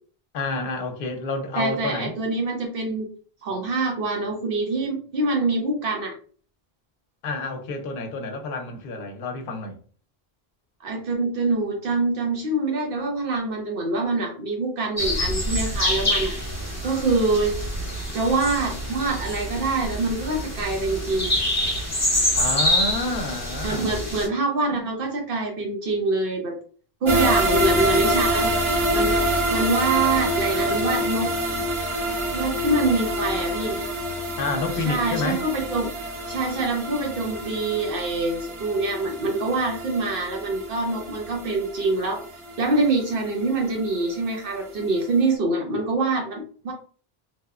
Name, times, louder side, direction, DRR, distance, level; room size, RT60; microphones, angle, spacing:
voice 1, 0.3-2.1 7.2-9.8 22.4-24.0 34.4-35.4, left 3 dB, 65° left, 0.8 m, -29 dB
voice 2, 1.5-3.1 3.4-6.1 10.8-16.4 16.8-17.5 18.1-21.4 23.6-26.5 27.0-28.5 28.9-31.3 32.3-33.8 34.9-35.9 36.3-42.2 42.6-46.7, right 3 dB, 65° right, 0.7 m, -25 dB
sound 1, 15.0-24.3, left 1 dB, 15° left, 0.8 m, -26 dB
sound 2, 27.1-44.1 44.5-44.6 45.0-45.1, equal, 40° right, 0.4 m, -26 dB
2.8 x 2.1 x 2.3 m
omnidirectional pair, 1.1 m